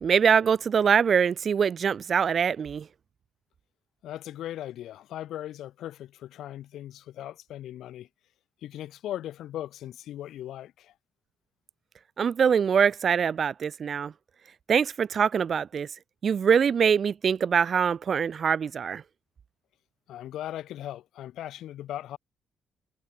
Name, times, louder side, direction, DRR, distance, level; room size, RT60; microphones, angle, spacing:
voice 1, 0.0-2.9 12.2-14.1 14.7-15.9 16.2-19.0, right 7 dB, 50° right, 0.3 m, -23 dB
voice 2, 4.0-8.1 8.6-10.9 20.1-22.2, left 12 dB, 80° left, 1.9 m, -38 dB
cardioid pair, 90°, 0 cm